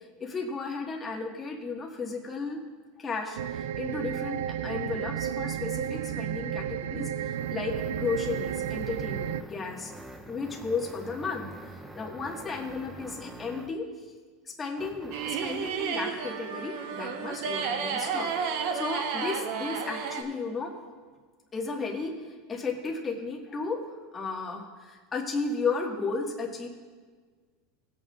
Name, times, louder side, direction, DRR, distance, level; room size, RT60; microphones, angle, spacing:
voice 1, 0.2-2.6 3.0-7.1 7.5-9.9 10.3-11.5 11.9-13.9 14.6-20.7 21.5-22.1 22.5-23.8 24.1-26.7, left 4 dB, 20° left, 0 dB, 1.6 m, -34 dB
sound 1, 3.4-9.4, right 10 dB, 85° right, 0.3 m, -32 dB
sound 2, 6.7-13.9 14.8-15.9, right 2 dB, 10° right, 0.6 m, -46 dB
sound 3, 15.1-20.2, right 6 dB, 60° right, 1.0 m, -32 dB
19.0 x 8.5 x 2.4 m, 1.5 s
supercardioid pair, 145°, 0 cm